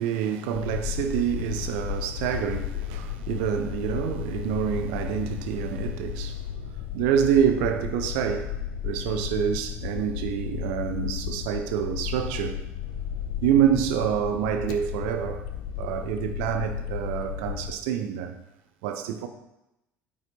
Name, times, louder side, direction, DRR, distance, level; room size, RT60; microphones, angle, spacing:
voice 1, 0.0-8.5 8.8-12.6 13.4-15.4 15.8-18.4 18.8-19.3, right 9 dB, 60° right, 0.9 m, -27 dB
sound 1, 0.5-17.7, left 8 dB, 60° left, 0.9 m, -34 dB
8.9 x 7.5 x 4.3 m
figure-of-eight pair, 60°, 8 cm